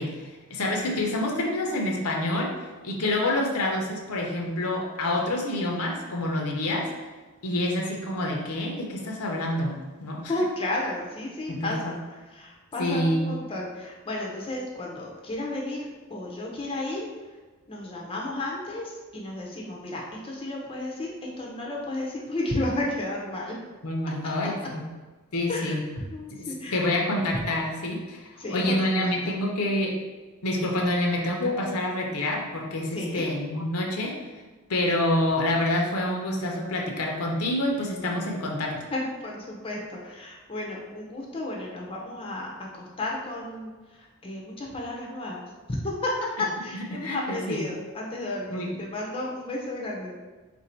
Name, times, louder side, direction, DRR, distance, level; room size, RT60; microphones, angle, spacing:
voice 1, 0.0-2.5 2.8-6.9 7.4-10.3 11.5-12.0 12.8-13.3 23.8-24.9 25.3-25.8 26.3-29.9 30.4-34.2 34.7-38.9 46.7-47.7 48.5-48.7, left 1 dB, 70° left, 0 dB, 0.7 m, -27 dB
voice 2, 10.3-11.9 12.4-15.8 16.1-17.1 17.7-23.5 25.5-25.7 26.1-26.8 28.4-28.8 32.9-33.3 38.9-43.7 44.2-45.4 45.8-46.1 46.6-50.1, left 1 dB, 25° left, -3 dB, 0.6 m, -33 dB
3.7 x 2.6 x 4.4 m, 1.3 s
head